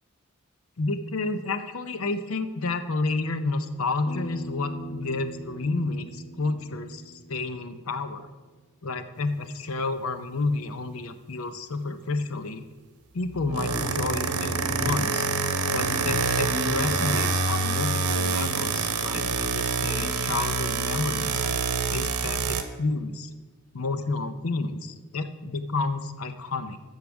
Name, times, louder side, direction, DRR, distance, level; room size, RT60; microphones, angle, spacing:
voice 1, 0.8-8.3 8.8-12.7 13.1-15.3 15.7-21.4 21.9-23.3 23.7-26.8, left 3 dB, 70° left, 10 dB, 0.6 m, -30 dB
Bass guitar, 4.1-8.3, right 2 dB, 30° left, 0.9 m, -42 dB
sound 1, 13.3-22.6, right 4 dB, 85° right, 1.0 m, -26 dB
sound 2, 16.2-16.5 17.7-18.5 19.8-20.3 20.7-21.0, right 1 dB, ahead, 1.8 m, -47 dB
8.2 x 6.6 x 7.1 m, 1.3 s
head